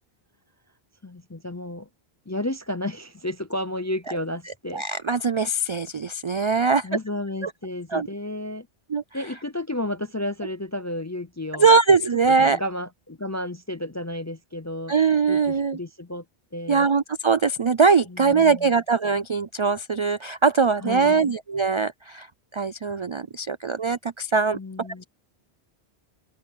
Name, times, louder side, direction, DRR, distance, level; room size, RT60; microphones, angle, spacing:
voice 1, 1.0-1.9 2.3-4.8 6.8-8.7 9.1-11.8 12.3-14.9 15.3-16.2 16.5-16.9 18.1-18.8 20.8-21.3 24.5-25.0, left 1 dB, 25° left, 0.4 m, -32 dB
voice 2, 4.7-6.9 7.9-8.1 8.9-9.0 11.6-12.6 14.9-15.8 16.7-22.3 22.5-24.6, right 5 dB, 50° right, 0.3 m, -21 dB
omnidirectional pair, 1.1 m